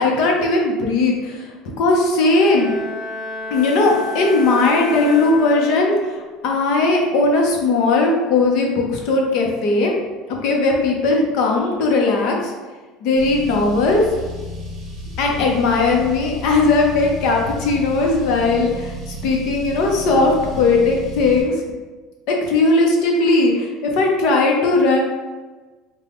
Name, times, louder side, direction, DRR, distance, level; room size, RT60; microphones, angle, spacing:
voice 1, 0.0-1.5 1.8-2.7 3.5-9.9 10.4-12.5 13.0-14.0 15.2-21.6 22.3-25.0, left 3 dB, 50° left, 0 dB, 0.7 m, -18 dB
Bowed string instrument, 2.2-6.3, left 2 dB, 15° left, 0.5 m, -32 dB
Car, 13.2-21.4, right 1 dB, 30° right, 1.1 m, -33 dB
3.8 x 2.2 x 3.4 m, 1.3 s
cardioid pair, 175°, 0 cm